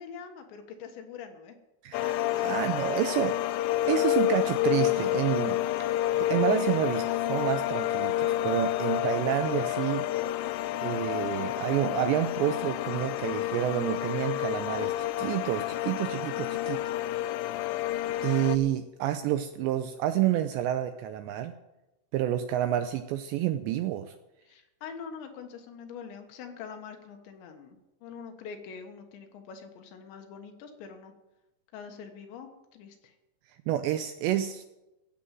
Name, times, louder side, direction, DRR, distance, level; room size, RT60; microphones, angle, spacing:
voice 1, 0.0-1.6 16.6-17.2 24.5-31.1 31.7-33.1, left 6 dB, 70° left, 5 dB, 3.4 m, -44 dB
voice 2, 1.8-3.5 3.9-5.6 6.2-10.1 10.8-16.8 18.2-21.5 22.1-24.1 33.7-34.6, right 12 dB, 85° right, 9 dB, 2.6 m, -29 dB
sound 1, 1.9-18.6, left 13 dB, 90° left, 2.5 m, -29 dB
16.0 x 7.8 x 7.5 m, 0.97 s
omnidirectional pair, 5.6 m